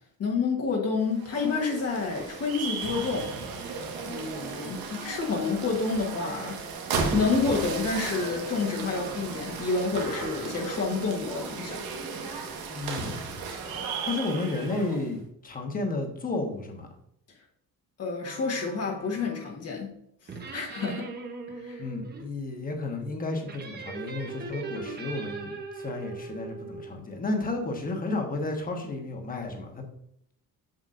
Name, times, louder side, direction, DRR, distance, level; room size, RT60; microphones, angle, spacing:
voice 1, 0.2-3.3 4.0-6.6 7.1-11.8 18.0-19.9 20.5-21.0 21.6-21.8, left 4 dB, 45° left, -1 dB, 1.3 m, -29 dB
sound 1, 1.0-15.1, right 4 dB, 90° right, 1.5 m, -35 dB
voice 2, 12.7-13.3 14.0-16.9 21.8-29.8, left 2 dB, 25° left, 3 dB, 1.1 m, -32 dB
sound 2, 18.2-19.7 20.3-22.2 23.4-27.0, right 3 dB, 30° right, 0.9 m, -40 dB
7.6 x 7.2 x 2.5 m, 0.73 s
cardioid pair, 180°, 35 cm